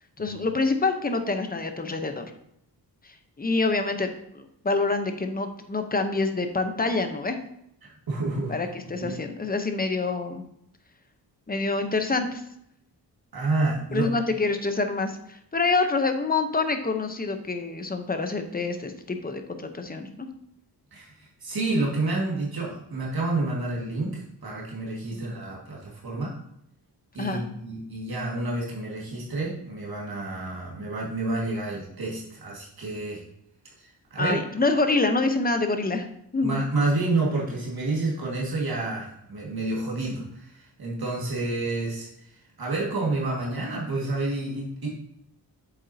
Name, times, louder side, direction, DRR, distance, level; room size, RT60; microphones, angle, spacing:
voice 1, 0.2-2.3 3.4-4.1 4.3-7.4 8.5-10.4 11.5-12.4 13.9-20.3 27.2-27.4 34.2-36.7, left 3 dB, 20° left, 7 dB, 0.8 m, -26 dB
voice 2, 8.1-8.6 9.0-9.1 13.3-14.1 20.9-26.4 27.1-33.2 33.8-34.4 36.4-42.1 42.6-44.9, right 2 dB, 65° right, -4 dB, 1.9 m, -29 dB
8.3 x 7.1 x 2.8 m, 0.76 s
wide cardioid pair, 120°, 40 cm